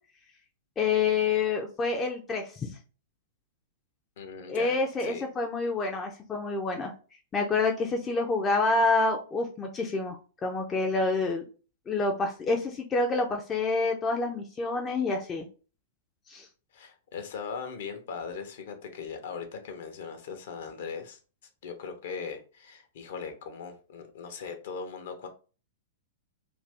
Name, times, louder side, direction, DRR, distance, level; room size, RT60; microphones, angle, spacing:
voice 1, 0.8-2.7 4.5-6.9 7.3-10.2 10.4-11.4 11.9-15.5 16.3-16.5, left 3 dB, 20° left, 0.5 m, -27 dB
voice 2, 4.2-5.2 16.7-21.2 21.6-25.3, left 5 dB, 55° left, 0.7 m, -39 dB
2.6 x 2.5 x 3.3 m
figure-of-eight pair, 100°, 0 cm